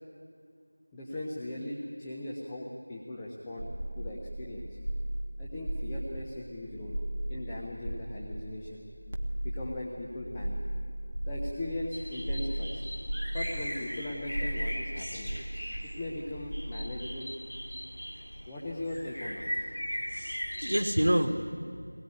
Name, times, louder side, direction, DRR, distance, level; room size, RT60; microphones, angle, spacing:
voice 1, 0.9-4.8 5.4-7.0 7.3-8.8 9.4-10.6 11.2-12.9 13.3-15.4 15.8-17.3 18.5-19.7, left 1 dB, 5° left, -5 dB, 0.5 m, -39 dB
sound 1, 3.6-16.5, right 1 dB, 30° right, 1.1 m, -37 dB
sound 2, 11.9-21.0, equal, 50° left, 3.6 m, -39 dB
voice 2, 20.1-21.5, equal, 80° right, 2 dB, 2.2 m, -28 dB
22.0 x 20.0 x 9.1 m, 2.3 s
figure-of-eight pair, 180°, 0 cm